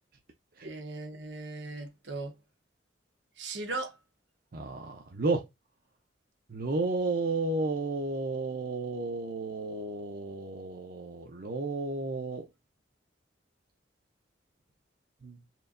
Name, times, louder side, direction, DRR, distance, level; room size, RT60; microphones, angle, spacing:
voice 1, 0.6-2.3 3.4-4.0, right 2 dB, 80° right, 1.1 m, -38 dB
voice 2, 4.5-5.5 6.5-12.5 15.2-15.4, right 3 dB, 55° right, 0.6 m, -32 dB
4.5 x 3.0 x 2.5 m
head